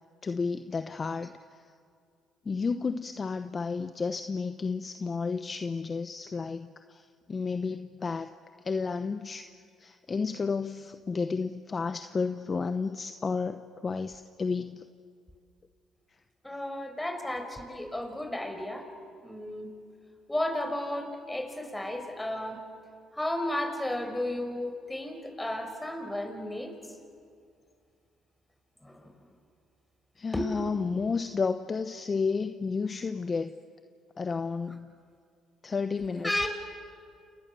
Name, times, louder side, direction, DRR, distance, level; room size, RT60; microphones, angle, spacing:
voice 1, 0.2-1.3 2.5-7.0 7.3-8.3 8.6-9.4 9.8-14.8 30.2-33.5 34.2-34.9 35.6-36.5, left 4 dB, 35° left, 9 dB, 1.0 m, -31 dB
voice 2, 16.4-18.9 19.2-19.7 20.3-22.6 23.1-26.7 28.8-29.1 30.3-30.5 36.2-36.5, left 1 dB, 10° left, 5 dB, 5.5 m, -33 dB
30.0 x 28.5 x 7.0 m, 2.3 s
supercardioid pair, 70°, 0 cm